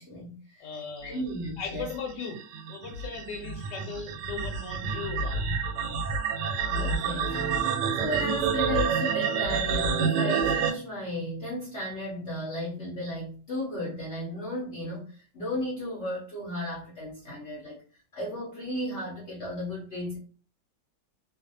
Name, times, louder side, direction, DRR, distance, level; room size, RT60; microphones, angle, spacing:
voice 1, 0.0-0.7 1.0-1.9 5.9-6.0 6.7-17.8 18.1-20.2, left 1 dB, 60° left, -5 dB, 0.8 m, -34 dB
voice 2, 0.6-1.2 1.6-2.4 2.7-5.4, left 5 dB, 75° left, 4 dB, 1.1 m, -38 dB
sound 1, 1.4-10.7, right 5 dB, 85° right, 1.3 m, -28 dB
Acoustic guitar, 7.3-12.0, right 4 dB, 35° left, 1.0 m, -44 dB
2.6 x 2.5 x 2.6 m, 0.40 s
omnidirectional pair, 1.9 m